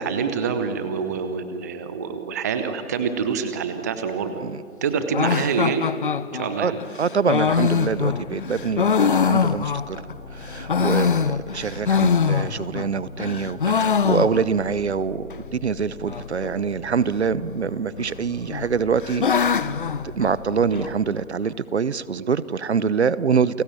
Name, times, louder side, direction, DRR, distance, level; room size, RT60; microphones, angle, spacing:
voice 1, 0.0-4.4 4.8-5.9 6.3-6.8 13.7-13.9 20.7-20.8 22.2-22.3, right 6 dB, 15° right, 9 dB, 0.7 m, -26 dB
sound 1, 5.1-10.1 10.5-12.9 13.2-14.7 15.0-15.1 15.3-15.4 16.1-16.5 17.5-18.1 18.5-20.9, left 6 dB, 40° left, 0.7 m, -23 dB
voice 2, 7.0-10.0 10.3-19.3 20.0-23.6, right 6 dB, 50° right, 18 dB, 1.0 m, -25 dB
sound 2, 7.4-20.9, left 3 dB, 60° left, 7.6 m, -41 dB
30.0 x 22.0 x 9.0 m, 2.5 s
figure-of-eight pair, 145°, 41 cm